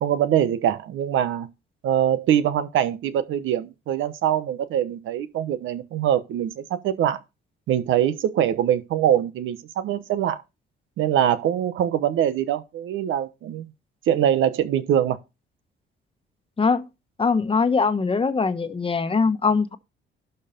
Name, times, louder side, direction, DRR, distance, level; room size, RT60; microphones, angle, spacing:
voice 1, 0.0-1.5 1.8-7.2 7.7-10.4 11.0-13.7 14.1-15.2, right 10 dB, 80° right, 1.0 m, -23 dB
voice 2, 17.2-19.8, left 4 dB, 25° left, 1.1 m, -22 dB
12.0 x 4.6 x 5.2 m
cardioid pair, 90°, 20 cm